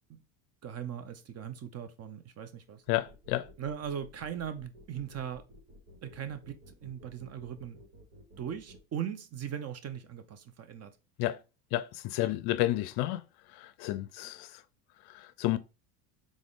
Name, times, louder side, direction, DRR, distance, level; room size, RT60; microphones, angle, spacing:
voice 1, 0.6-2.8 3.6-5.4 6.0-7.8 8.4-11.0 12.2-12.3, right 9 dB, 35° right, 0.6 m, -39 dB
voice 2, 2.9-3.5 11.2-11.4 11.7-13.2 13.5-14.6 15.0-15.6, left 16 dB, 55° left, 0.5 m, -31 dB
sound 1, 3.0-8.8, left 1 dB, 70° right, 2.5 m, -54 dB
3.7 x 3.6 x 3.6 m
supercardioid pair, 95°, 48 cm